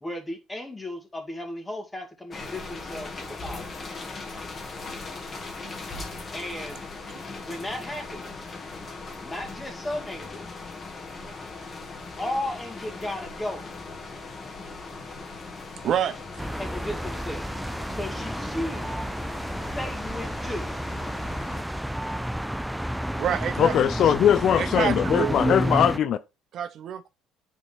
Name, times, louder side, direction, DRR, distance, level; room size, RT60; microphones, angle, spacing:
voice 1, 0.0-3.7 6.3-6.9 7.4-8.3 9.2-10.7 12.2-13.7 16.6-17.5 18.0-18.9 19.7-20.7, left 1 dB, 15° left, 2.3 m, -35 dB
sound 1, 2.3-21.6, left 3 dB, 35° left, 1.9 m, -39 dB
voice 2, 15.8-16.2 23.2-23.8 24.6-25.8 26.5-27.1, right 9 dB, 60° right, 0.6 m, -28 dB
sound 2, 16.4-26.0, equal, 5° right, 0.3 m, -30 dB
voice 3, 23.6-26.2, left 9 dB, 55° left, 0.5 m, -21 dB
9.5 x 4.2 x 3.4 m
cardioid pair, 95°, 0 cm